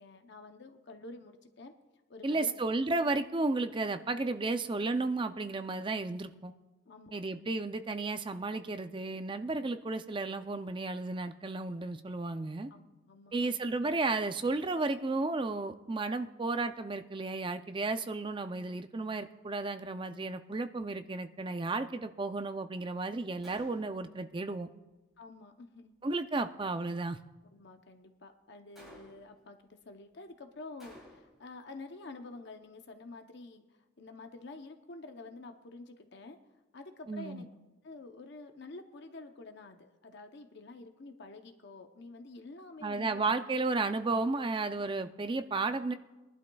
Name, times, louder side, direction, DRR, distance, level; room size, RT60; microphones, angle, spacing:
voice 1, 0.0-1.7 2.1-2.5 6.9-7.2 12.7-13.5 25.2-25.9 27.5-29.6 29.8-36.4 36.7-37.5 37.8-43.2, left 3 dB, 55° left, 6 dB, 0.7 m, -49 dB
voice 2, 2.2-6.5 7.1-12.7 13.3-24.7 26.0-27.2 37.1-37.4 42.8-45.9, right 3 dB, 25° right, 9 dB, 0.4 m, -33 dB
Gunshot gunfire, 23.4-24.1 28.7-29.4 30.8-31.5, equal, ahead, 2.9 m, -54 dB
22.0 x 11.5 x 2.3 m, 1.1 s
head